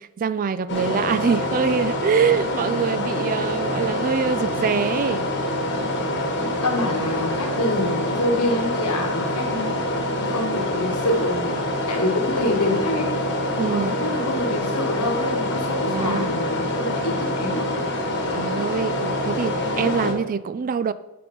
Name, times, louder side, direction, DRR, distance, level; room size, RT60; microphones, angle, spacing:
voice 1, 0.0-5.3 13.6-14.0 15.9-16.4 18.3-20.9, right 6 dB, 40° right, 0.3 m, -24 dB
sound 1, 0.7-20.1, left 1 dB, 55° left, 1.3 m, -25 dB
voice 2, 6.5-11.6 11.9-13.2 13.7-17.7, left 1 dB, 85° left, 1.7 m, -26 dB
7.8 x 5.2 x 5.4 m
head